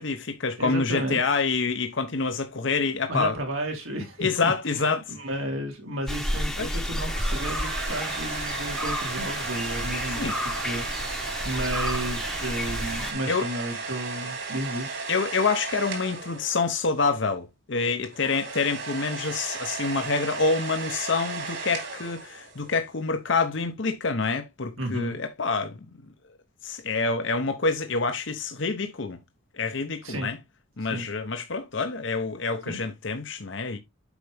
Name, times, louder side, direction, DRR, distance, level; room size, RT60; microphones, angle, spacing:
voice 1, 0.0-3.4 4.2-5.1 6.6-6.8 10.1-10.4 13.3-13.5 15.1-25.8 26.6-29.2 29.6-30.4 30.8-33.8, left 4 dB, 60° left, 0.9 m, -27 dB
voice 2, 0.6-1.2 3.1-4.8 5.1-15.0 24.8-25.2 30.0-30.3 30.9-31.1 32.7-32.8, right 1 dB, 85° right, 3.4 m, -33 dB
sound 1, 6.1-13.1, equal, ahead, 1.0 m, -31 dB
sound 2, 6.9-17.0 18.0-22.8, right 4 dB, 60° right, 3.6 m, -35 dB
8.2 x 5.3 x 3.4 m
head